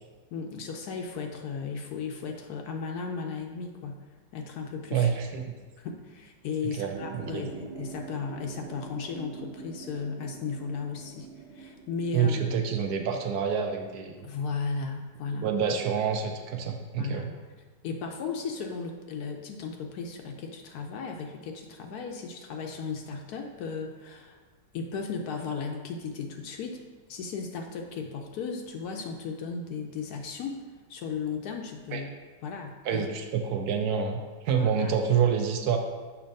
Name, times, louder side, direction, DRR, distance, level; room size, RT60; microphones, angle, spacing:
voice 1, 0.3-4.1 4.3-5.1 5.8-11.3 11.5-12.4 14.2-15.5 17.0-17.3 17.8-24.4 24.7-26.8 27.1-32.1 32.4-33.1 34.5-34.9, left 5 dB, 70° left, 3 dB, 1.0 m, -35 dB
voice 2, 4.9-5.6 6.7-7.5 12.1-14.2 15.3-17.3 31.9-32.0 32.8-35.8, right 7 dB, 70° right, 4 dB, 1.0 m, -27 dB
sound 1, 6.9-12.2, right 4 dB, 90° right, 0.5 m, -43 dB
6.9 x 2.9 x 5.2 m, 1.4 s
omnidirectional pair, 1.8 m